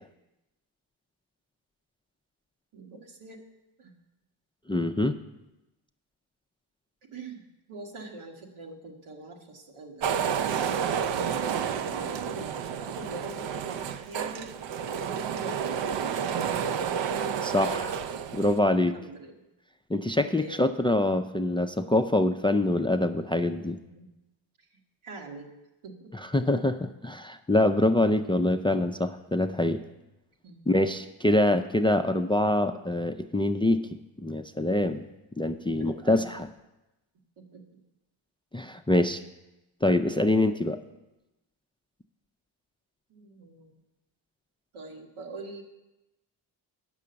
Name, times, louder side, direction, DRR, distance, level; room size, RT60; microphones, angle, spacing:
voice 1, 2.7-3.4 3.8-3.9 7.1-7.4 7.7-10.8 11.9-14.5 15.0-15.9 18.9-19.3 20.3-20.6 23.8-24.1 25.0-25.5 25.8-26.2 30.4-30.6 35.7-36.2 37.4-37.8 43.1-43.8 44.7-45.6, right 3 dB, 80° right, 2 dB, 1.7 m, -43 dB
voice 2, 4.7-5.2 17.4-18.0 18.3-19.0 19.9-23.8 26.1-29.8 30.7-33.9 34.2-35.1 35.4-36.5 38.5-39.2 39.8-40.8, left 1 dB, 10° left, 9 dB, 0.4 m, -25 dB
sound 1, 10.0-18.6, right 7 dB, 65° right, 0.6 m, -30 dB
8.4 x 6.1 x 6.8 m, 0.98 s
cardioid pair, 65°, 48 cm